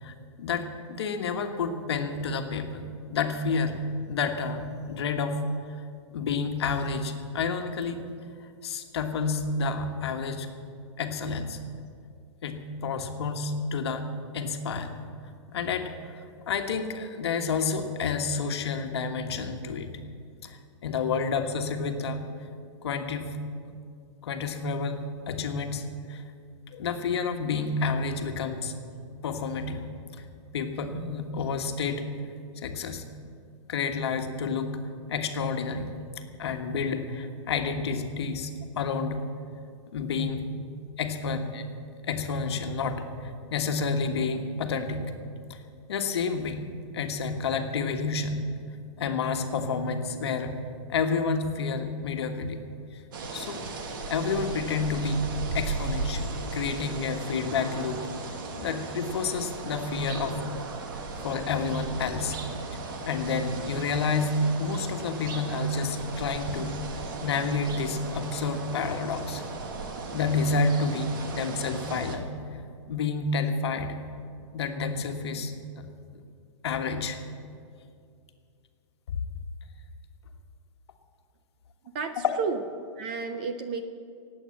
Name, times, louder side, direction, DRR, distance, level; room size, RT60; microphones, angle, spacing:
voice 1, 0.0-3.8 4.1-5.4 6.1-8.0 8.6-10.5 11.0-11.6 12.4-14.1 14.3-14.9 15.5-16.2 16.5-19.9 20.4-22.2 22.8-23.4 24.2-26.2 26.7-28.7 29.2-29.9 30.5-32.1 32.6-33.0 33.7-34.8 35.1-35.9 36.4-39.2 39.9-40.4 41.0-41.6 42.0-45.1 45.5-45.6 45.9-46.6 46.9-48.4 49.0-50.5 50.9-52.6 52.9-53.0 53.3-53.6 54.1-55.2 55.5-58.1 58.6-60.4 61.2-62.4 63.0-66.8 67.2-69.4 70.1-72.3 72.9-74.0 74.5-75.9 76.6-77.2 79.1-79.2 82.2-82.4, left 4 dB, 55° left, 6 dB, 1.4 m, -29 dB
sound 1, 53.1-72.2, right 3 dB, 40° right, 1.4 m, -36 dB
voice 2, 81.9-82.6 83.0-83.8, right 5 dB, 20° right, 8 dB, 0.3 m, -31 dB
19.0 x 8.5 x 7.6 m, 2.3 s
hypercardioid pair, 175°, 16 cm